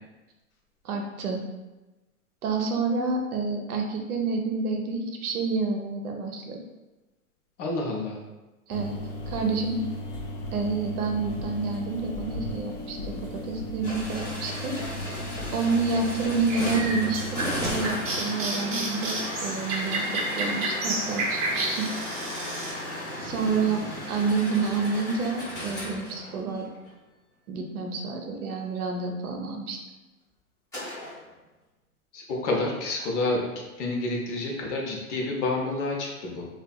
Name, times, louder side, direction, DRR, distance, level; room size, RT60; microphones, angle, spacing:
voice 1, 0.8-1.4 2.4-6.6 8.7-9.0 9.3-9.8 10.5-14.8 15.5-21.9 23.2-26.7 27.5-29.8, right 4 dB, 80° right, 2 dB, 0.6 m, -29 dB
voice 2, 7.6-8.2 32.1-33.4 33.8-36.5, left 2 dB, 55° left, -1 dB, 0.7 m, -29 dB
sound 1, 8.7-17.7, left 1 dB, 90° left, 0.7 m, -36 dB
sound 2, 13.8-26.9 30.7-31.2, left 1 dB, 10° left, 0.6 m, -35 dB
sound 3, 16.5-22.7, right 2 dB, 35° right, 0.7 m, -31 dB
2.6 x 2.3 x 2.2 m, 1.1 s
hypercardioid pair, 120°, 44 cm